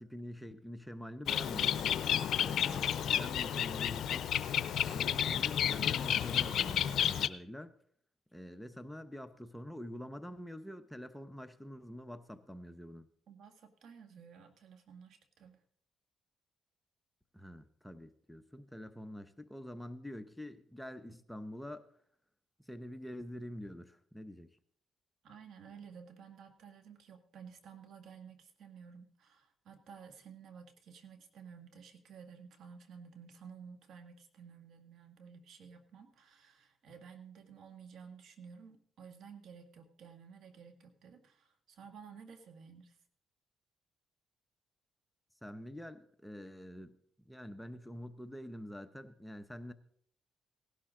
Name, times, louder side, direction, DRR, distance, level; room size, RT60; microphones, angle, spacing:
voice 1, 0.0-1.8 2.3-4.3 4.8-7.7 8.3-13.1 17.3-21.8 22.6-24.5 45.4-47.0 47.2-49.7, equal, 5° left, 9 dB, 0.9 m, -46 dB
Bird, 1.3-7.3, left 9 dB, 70° left, 0.6 m, -31 dB
voice 2, 13.3-15.6 25.2-43.0, right 6 dB, 70° right, 7 dB, 1.7 m, -53 dB
17.5 x 11.5 x 3.8 m, 0.64 s
cardioid pair, 90°, 0 cm